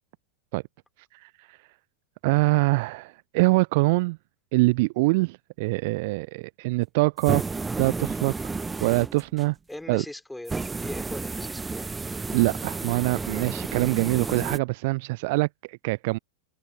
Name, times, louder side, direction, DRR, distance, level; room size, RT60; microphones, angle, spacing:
voice 1, 2.2-4.2 4.5-8.3 8.8-9.6 9.9-10.0 12.3-16.2, right 24 dB, 50° right, 0.6 m, -24 dB
sound 1, 7.2-9.5 10.5-14.6, right 4 dB, 10° right, 1.6 m, -32 dB
voice 2, 9.7-12.0, left 1 dB, 5° left, 5.4 m, -40 dB
figure-of-eight pair, 90°, 0 cm